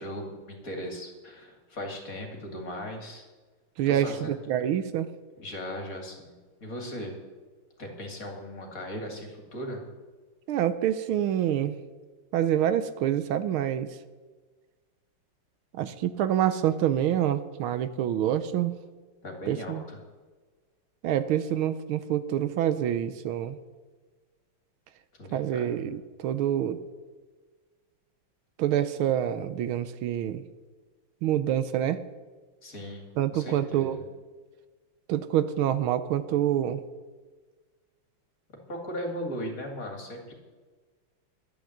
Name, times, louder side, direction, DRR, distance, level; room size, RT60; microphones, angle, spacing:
voice 1, 0.0-3.3 3.9-4.3 5.4-7.2 7.8-9.8 19.2-20.0 25.1-25.7 32.6-34.0 38.7-40.3, equal, 40° left, 2 dB, 2.8 m, -38 dB
voice 2, 3.8-5.1 10.5-11.7 12.3-13.9 15.7-18.7 19.5-19.8 21.0-23.6 25.3-26.8 28.6-30.4 31.2-32.0 33.2-34.0 35.1-36.8, right 11 dB, 75° right, 13 dB, 1.5 m, -26 dB
12.5 x 10.5 x 7.8 m, 1.4 s
omnidirectional pair, 2.4 m